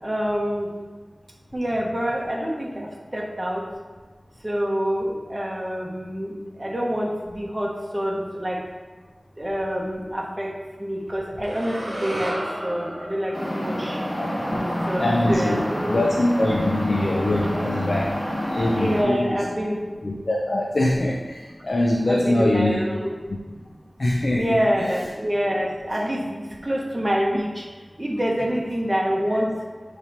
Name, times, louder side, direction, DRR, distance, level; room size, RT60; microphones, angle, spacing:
voice 1, 0.0-0.7 1.5-2.9 3.1-3.6 4.4-6.3 6.6-8.6 9.4-10.5 10.8-12.3 12.6-14.0 14.5-16.0 18.7-19.8 22.0-23.1 24.3-26.2 26.7-27.5 28.0-29.5, equal, 20° right, -3 dB, 1.3 m, -26 dB
sound 1, 11.4-15.7, right 1 dB, 40° right, 0.9 m, -34 dB
sound 2, 13.3-19.0, equal, 35° left, 1.8 m, -28 dB
voice 2, 14.2-14.6 15.0-18.1 18.5-19.4 20.0-22.8 24.0-25.0 29.3-29.5, left 1 dB, 65° left, -1 dB, 0.6 m, -23 dB
7.2 x 3.4 x 4.3 m, 1.4 s
wide cardioid pair, 60°, 0 cm